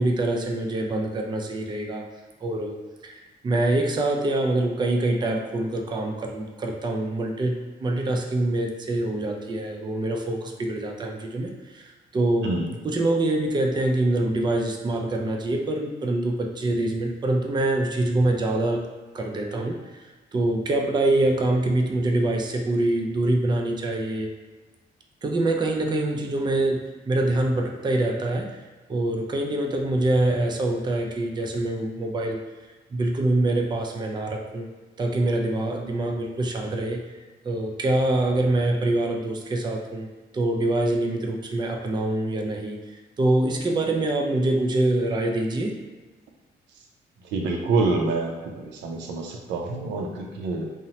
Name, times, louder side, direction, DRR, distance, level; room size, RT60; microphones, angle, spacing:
voice 1, 0.0-2.1 2.4-2.8 3.0-12.5 12.8-18.8 19.1-24.3 25.2-28.6 28.9-32.4 32.9-34.7 35.0-37.0 37.4-40.1 40.3-42.8 43.2-45.8, right 2 dB, 25° right, 1 dB, 0.4 m, -25 dB
voice 2, 12.4-12.7 47.2-50.7, right 3 dB, 85° right, 1 dB, 0.4 m, -27 dB
2.8 x 2.0 x 2.7 m, 1.3 s
cardioid pair, 70°, 18 cm